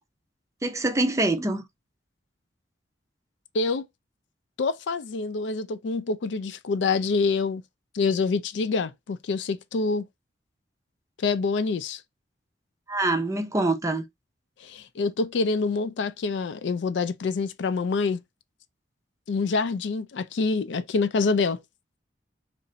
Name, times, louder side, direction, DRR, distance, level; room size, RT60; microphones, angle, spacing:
voice 1, 0.6-1.6 12.9-14.0, right 2 dB, 20° right, 0.5 m, -25 dB
voice 2, 3.5-3.9 4.6-7.6 7.9-10.1 11.2-12.0 14.6-18.2 19.3-21.6, left 4 dB, 80° left, 0.4 m, -26 dB
2.8 x 2.5 x 4.1 m
head